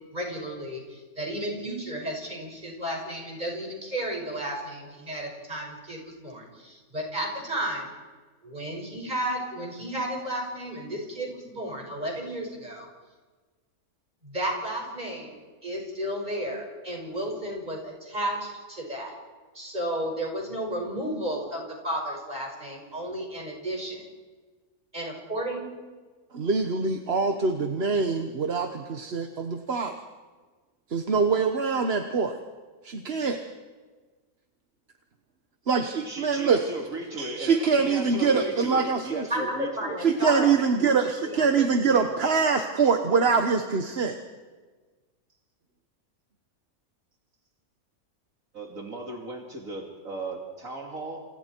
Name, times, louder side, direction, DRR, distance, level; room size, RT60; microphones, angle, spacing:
voice 1, 0.1-7.9 8.4-12.9 14.2-19.1 19.5-24.0 24.9-25.6 39.3-40.5 41.0-42.1, right 1 dB, 30° right, 0 dB, 6.1 m, -33 dB
voice 2, 26.3-29.9 30.9-32.4 32.8-33.4 35.7-36.6 37.2-39.3 40.0-44.2, right 5 dB, 45° right, 6 dB, 1.3 m, -24 dB
voice 3, 36.0-40.0 48.5-51.3, right 1 dB, 65° right, 0 dB, 3.0 m, -36 dB
29.0 x 28.5 x 4.6 m, 1.4 s
omnidirectional pair, 1.5 m